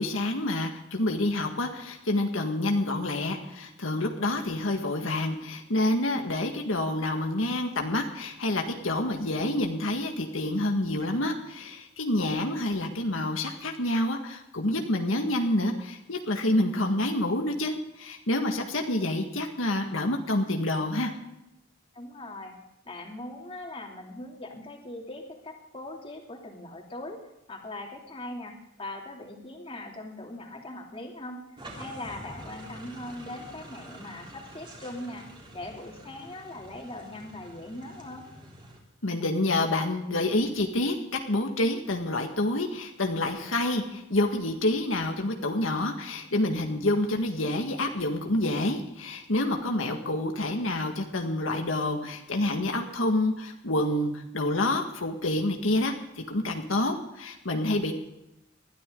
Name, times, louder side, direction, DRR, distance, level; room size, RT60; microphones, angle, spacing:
voice 1, 0.0-21.1 39.0-57.9, left 1 dB, 80° left, 3 dB, 1.8 m, -28 dB
voice 2, 21.9-22.6 22.8-27.2 27.5-31.5 31.8-38.3, left 1 dB, 30° left, 1 dB, 2.8 m, -40 dB
sound 1, 31.6-38.8, right 1 dB, 25° right, 3.5 m, -47 dB
20.5 x 13.0 x 3.9 m, 0.89 s
head